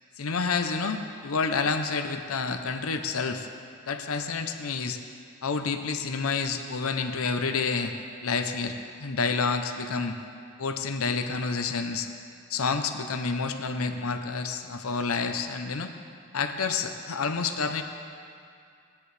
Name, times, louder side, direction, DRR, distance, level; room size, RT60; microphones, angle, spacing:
voice 1, 0.2-3.5 3.9-5.0 5.4-7.9 8.2-10.2 10.6-12.1 12.5-15.9 16.3-17.8, left 4 dB, 80° left, 7 dB, 0.7 m, -29 dB
16.5 x 10.0 x 3.3 m, 2.4 s
head